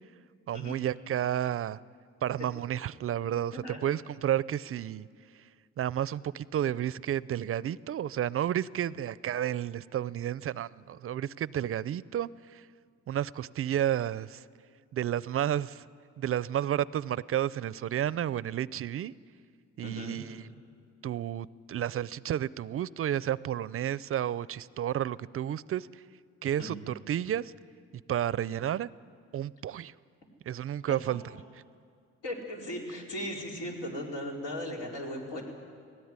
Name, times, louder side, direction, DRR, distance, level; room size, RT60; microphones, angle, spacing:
voice 1, 0.5-1.8 2.2-5.1 5.8-12.7 13.1-14.4 14.9-15.8 16.2-19.1 19.8-20.5 21.0-26.0 26.4-27.5 28.1-28.9 29.3-29.9 30.5-31.2, right 11 dB, 50° right, 20 dB, 0.4 m, -31 dB
voice 2, 19.8-20.2 26.5-26.7 30.9-31.1 32.2-35.4, equal, 90° left, -1 dB, 4.3 m, -37 dB
18.5 x 17.0 x 9.6 m, 2.1 s
cardioid pair, 90°, 30 cm